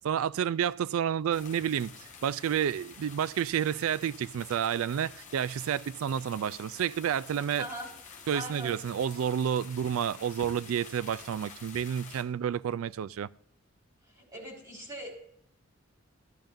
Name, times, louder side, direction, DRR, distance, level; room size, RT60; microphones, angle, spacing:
voice 1, 0.0-1.9 2.2-7.7 8.3-13.3, right 8 dB, 80° right, 0.3 m, -30 dB
sound 1, 1.3-12.2, left 5 dB, 35° left, 1.3 m, -49 dB
voice 2, 7.6-7.9 8.3-8.8 14.1-15.1, equal, 15° right, 4.2 m, -40 dB
14.5 x 10.5 x 2.6 m
head